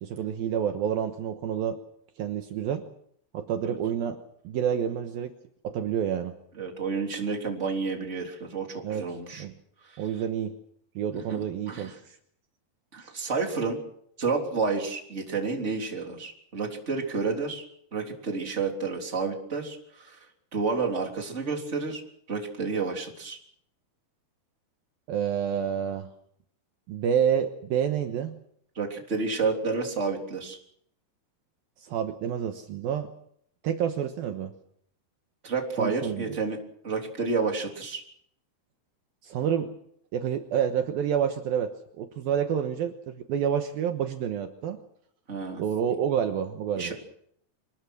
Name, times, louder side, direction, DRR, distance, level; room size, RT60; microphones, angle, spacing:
voice 1, 0.0-1.8 2.2-2.8 3.3-4.2 4.4-5.3 5.6-6.3 8.8-9.1 9.4-9.5 10.0-10.6 11.0-12.2 25.1-26.1 26.9-28.4 31.8-33.1 33.6-34.5 35.8-36.4 39.2-39.7 40.1-44.8 45.6-46.9, right 8 dB, 70° right, 6 dB, 2.8 m, -28 dB
voice 2, 6.6-9.4 9.9-10.0 11.1-11.4 11.7-11.9 12.9-13.8 14.2-17.6 17.9-20.2 20.5-22.0 22.3-23.4 28.7-30.6 35.4-36.6 36.8-38.0 45.3-45.6 46.8-46.9, right 4 dB, 20° right, 2 dB, 3.4 m, -30 dB
25.5 x 20.5 x 6.3 m, 0.68 s
omnidirectional pair, 4.7 m